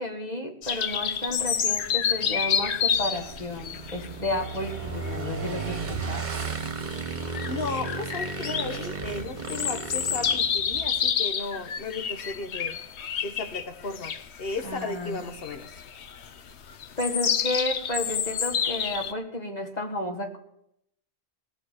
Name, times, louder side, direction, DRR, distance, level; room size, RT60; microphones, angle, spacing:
voice 1, 0.0-6.3 14.6-15.2 17.0-20.4, left 1 dB, 40° left, 3 dB, 2.0 m, -32 dB
sound 1, 0.6-19.1, left 8 dB, 80° left, 1.1 m, -29 dB
Motorcycle / Engine, 1.4-11.1, right 4 dB, 45° right, 1.3 m, -35 dB
voice 2, 7.5-12.8 13.2-14.1 14.4-15.8, left 3 dB, 60° left, 8 dB, 1.3 m, -35 dB
17.0 x 7.1 x 8.6 m, 0.77 s
omnidirectional pair, 1.1 m